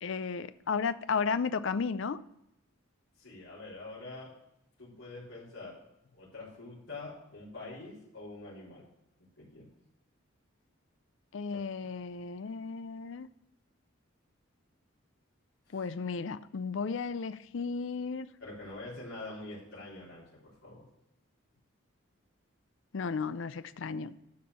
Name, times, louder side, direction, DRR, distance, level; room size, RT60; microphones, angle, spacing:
voice 1, 0.0-2.2 11.3-13.3 15.7-18.3 22.9-24.1, left 5 dB, 60° left, 14 dB, 0.5 m, -34 dB
voice 2, 3.2-4.3 4.8-5.8 6.1-8.8 9.4-9.7 15.7-15.9 18.4-20.8, left 2 dB, 85° left, -9 dB, 4.1 m, -45 dB
12.5 x 4.4 x 6.9 m, 0.83 s
head